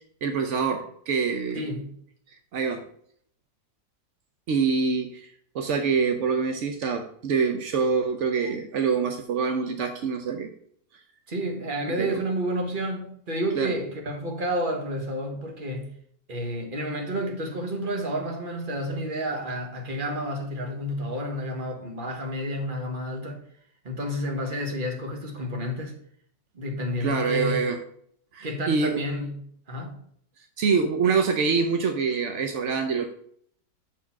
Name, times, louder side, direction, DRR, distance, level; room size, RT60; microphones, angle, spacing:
voice 1, 0.2-1.6 2.5-2.8 4.5-10.5 12.0-12.2 13.6-13.7 27.0-27.8 28.3-29.0 30.6-33.0, right 5 dB, 65° right, 0.7 m, -25 dB
voice 2, 1.5-2.0 11.3-15.9 16.3-23.4 23.8-26.0 26.5-27.6 28.4-30.0, equal, 30° right, 1.4 m, -30 dB
7.2 x 4.3 x 5.8 m
omnidirectional pair, 2.0 m